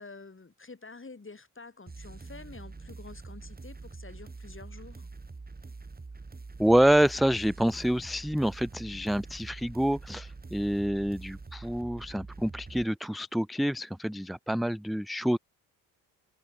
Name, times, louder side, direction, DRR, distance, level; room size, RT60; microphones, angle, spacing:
voice 1, 0.0-5.1, left 3 dB, 25° left, 7.8 m, -48 dB
sound 1, 1.9-12.8, right 3 dB, 20° right, 2.0 m, -45 dB
voice 2, 6.6-15.4, equal, ahead, 0.6 m, -27 dB
supercardioid pair, 65°, 49 cm